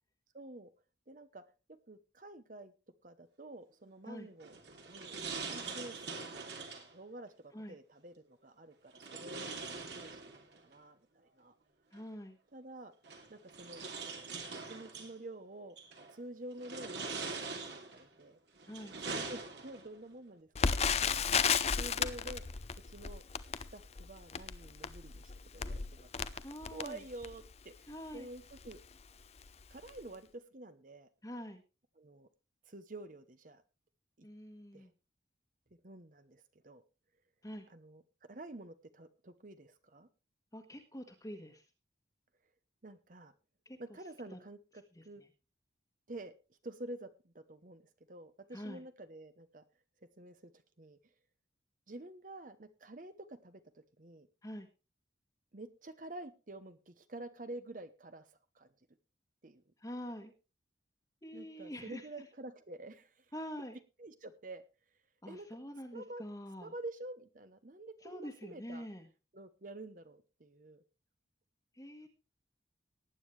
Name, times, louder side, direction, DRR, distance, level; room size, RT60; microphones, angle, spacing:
voice 1, 0.3-0.7 1.1-1.4 1.9-2.7 3.0-4.6 4.8-6.0 6.3-11.5 12.5-12.9 13.3-13.8 14.5-15.8 16.1-17.6 17.9-18.4 19.1-20.8 21.0-23.2 23.7-27.7 28.1-28.8 29.7-31.1 32.0-32.3 32.7-33.6 34.2-34.3 34.7-34.9 35.8-36.8 37.7-40.1 42.8-43.3 43.8-45.2 46.1-46.3 46.6-49.6 50.2-50.5 50.8-51.0 51.9-54.3 55.5-58.3 58.5-58.7 59.4-59.6 61.3-63.3 64.0-64.6 65.3-65.5 65.9-66.2 66.6-68.9 69.3-70.8, right 2 dB, 45° right, 11 dB, 0.9 m, -49 dB
sound 1, 4.4-6.9 8.9-10.6 12.0-12.1 13.0-15.1 15.8-16.1 16.6-18.1 18.6-20.0, right 4 dB, 65° right, 2.9 m, -43 dB
voice 2, 11.9-12.4 18.7-19.0 26.4-27.0 27.9-28.3 31.2-31.6 34.2-34.9 37.4-37.7 40.5-41.7 43.6-43.8 44.3-44.4 44.9-45.3 48.5-48.8 54.4-54.7 59.8-60.3 61.2-62.2 63.3-63.8 65.2-66.7 68.0-69.1 71.7-72.1, equal, 20° left, 1 dB, 1.4 m, -45 dB
Crackle, 20.6-27.5 28.1-28.2 28.5-28.8 29.4-29.6 29.9-30.0, left 6 dB, 35° left, 0.6 m, -34 dB
19.0 x 9.4 x 3.2 m, 0.31 s
head